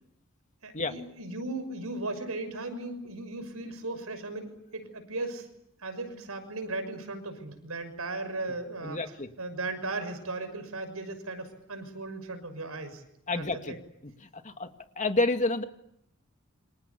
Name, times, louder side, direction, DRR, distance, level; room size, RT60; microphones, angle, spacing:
voice 1, 0.6-5.5 5.8-9.0 9.4-13.0 13.3-13.8, right 2 dB, 90° right, 8 dB, 6.2 m, -37 dB
voice 2, 8.8-9.3 13.3-13.7 14.0-14.7 15.0-15.6, left 2 dB, 35° left, 7 dB, 2.2 m, -29 dB
29.0 x 26.0 x 7.1 m, 0.77 s
head